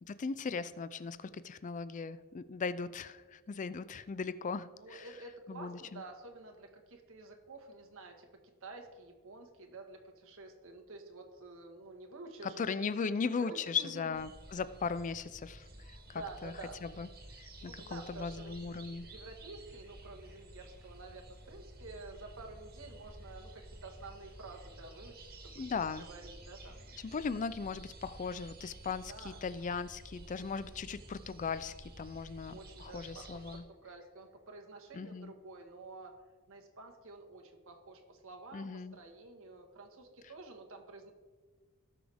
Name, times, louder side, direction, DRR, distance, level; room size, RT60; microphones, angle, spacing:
voice 1, 0.1-5.1 5.5-6.0 12.4-16.5 16.8-17.1 17.4-19.1 25.6-26.1 27.0-33.6 34.9-35.3 38.5-39.0, left 5 dB, 35° left, 15 dB, 0.4 m, -38 dB
voice 2, 4.7-14.2 16.1-16.8 17.6-25.7 26.0-27.0 29.1-29.4 30.4-30.8 32.5-36.1 36.5-41.1, right 3 dB, 65° right, 3 dB, 1.5 m, -50 dB
sound 1, 14.1-33.6, right 1 dB, 45° right, 2.0 m, -52 dB
18.0 x 6.2 x 3.5 m, 1.4 s
head